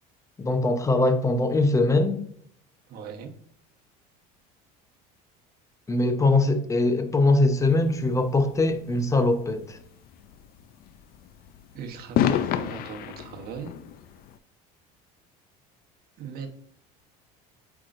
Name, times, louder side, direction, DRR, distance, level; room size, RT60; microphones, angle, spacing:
voice 1, 0.4-2.2 5.9-9.8, left 2 dB, 15° left, 0.8 m, -22 dB
voice 2, 2.9-3.3 11.7-13.7 16.2-16.5, right 6 dB, 55° right, 1.1 m, -39 dB
sound 1, 7.6-14.4, left 10 dB, 55° left, 0.5 m, -31 dB
8.2 x 4.8 x 2.6 m
supercardioid pair, 115°, 19 cm